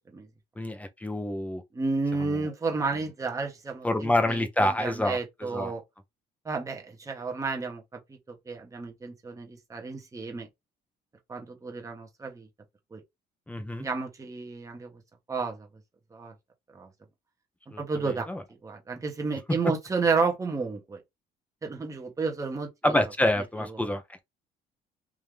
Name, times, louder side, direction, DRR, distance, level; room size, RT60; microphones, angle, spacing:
voice 1, 0.6-1.6 3.8-5.7 13.5-13.9 17.7-17.8 18.3-18.4 22.8-24.2, left 1 dB, 10° left, 0.8 m, -27 dB
voice 2, 1.7-5.8 6.4-8.0 8.3-10.5 11.3-12.5 12.9-13.0 13.8-14.9 15.3-15.7 16.1-16.3 16.7-16.9 17.8-18.3 18.6-21.0 21.6-23.0 23.7-23.9, right 4 dB, 20° right, 1.1 m, -31 dB
3.6 x 2.8 x 3.3 m
cardioid pair, 110°, 17 cm